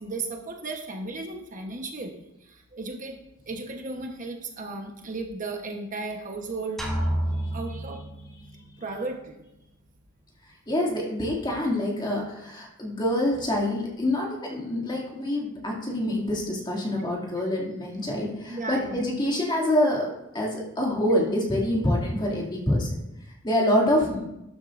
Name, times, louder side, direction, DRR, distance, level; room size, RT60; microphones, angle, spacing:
voice 1, 0.0-3.2 3.5-6.9 7.5-8.0 8.8-9.4 18.5-19.0, right 3 dB, 40° right, 2 dB, 1.1 m, -35 dB
sound 1, 6.8-8.6, right 1 dB, ahead, 2.2 m, -29 dB
voice 2, 10.7-23.0 23.4-24.3, left 1 dB, 25° left, -2 dB, 2.4 m, -26 dB
13.0 x 10.0 x 2.6 m, 0.88 s
head